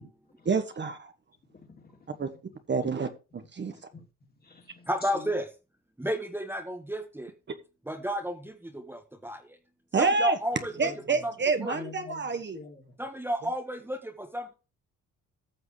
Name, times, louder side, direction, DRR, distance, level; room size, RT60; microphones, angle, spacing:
voice 1, 0.5-1.1 2.2-2.3 2.7-3.7 9.9-10.4 10.8-12.6, right 4 dB, 35° right, 1.3 m, -28 dB
voice 2, 1.5-2.2 2.8-2.9 3.7-4.0 4.4-5.4 10.7-11.2 11.7-13.0, left 4 dB, 30° left, 3.0 m, -47 dB
voice 3, 4.9-5.5 6.0-7.3 7.9-9.4 10.0-10.9 11.2-11.3 11.6-11.8 13.0-14.5, equal, 5° right, 1.5 m, -32 dB
14.5 x 6.1 x 3.2 m
cardioid pair, 90°, 30 cm